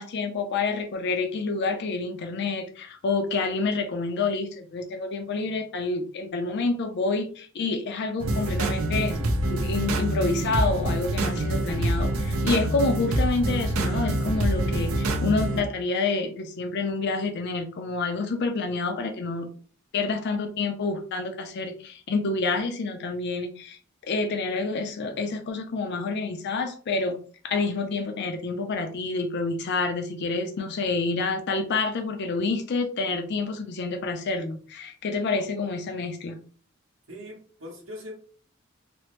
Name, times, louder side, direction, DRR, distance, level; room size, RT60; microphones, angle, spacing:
voice 1, 0.0-9.1 9.5-19.5 19.9-27.2 27.4-36.4, left 3 dB, 55° left, 5 dB, 0.4 m, -28 dB
sound 1, 8.2-15.6, right 1 dB, 90° right, 0.5 m, -26 dB
voice 2, 37.1-38.2, left 1 dB, 70° right, -1 dB, 1.0 m, -41 dB
3.2 x 2.0 x 2.9 m, 0.42 s
head